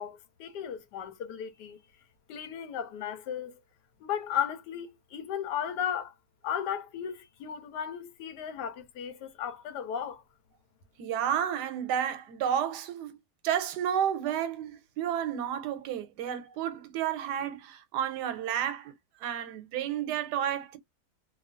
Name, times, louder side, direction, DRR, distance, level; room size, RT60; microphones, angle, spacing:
voice 1, 0.0-1.8 2.3-3.6 4.0-6.1 6.4-10.2, left 9 dB, 90° left, 1.2 m, -35 dB
voice 2, 11.0-13.2 13.4-18.9 19.2-20.8, right 9 dB, 85° right, 1.2 m, -31 dB
2.9 x 2.2 x 2.4 m
omnidirectional pair, 1.8 m